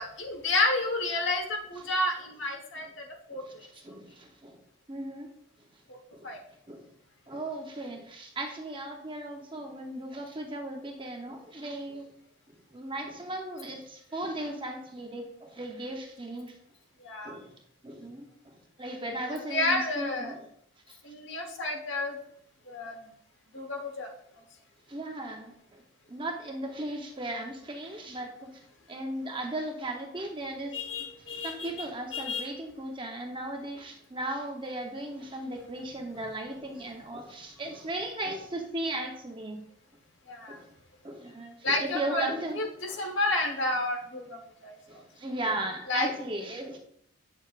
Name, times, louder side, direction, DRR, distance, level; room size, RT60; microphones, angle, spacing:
voice 1, 0.0-3.0 3.3-3.4 5.9-6.0 6.2-6.4 17.0-17.4 19.3-20.4 21.0-22.2 22.7-23.0 23.5-24.1 30.7-31.9 32.1-32.5 40.3-40.6 41.6-42.3 42.5-45.0 45.9-46.1, left 2 dB, 60° left, 2 dB, 1.3 m, -30 dB
voice 2, 3.3-4.6 4.9-5.3 6.1-6.3 6.7-6.9 7.3-12.1 12.7-16.5 17.2-20.4 24.9-25.8 26.1-28.6 28.9-30.8 31.3-39.6 40.5-40.7 41.0-42.6 42.9-43.1 44.9-46.8, right 1 dB, 25° right, 2 dB, 0.8 m, -37 dB
8.9 x 6.6 x 2.5 m, 0.70 s
head